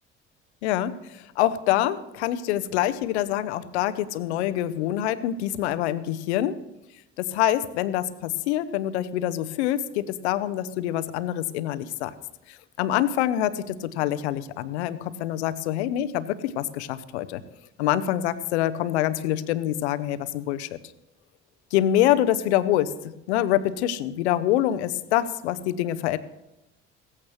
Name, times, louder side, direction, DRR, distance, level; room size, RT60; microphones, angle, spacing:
voice 1, 0.6-6.6 7.2-12.1 12.8-17.4 17.8-20.8 21.7-26.2, left 12 dB, 70° left, 13 dB, 0.8 m, -25 dB
17.5 x 14.5 x 3.2 m, 0.92 s
figure-of-eight pair, 55°, 35 cm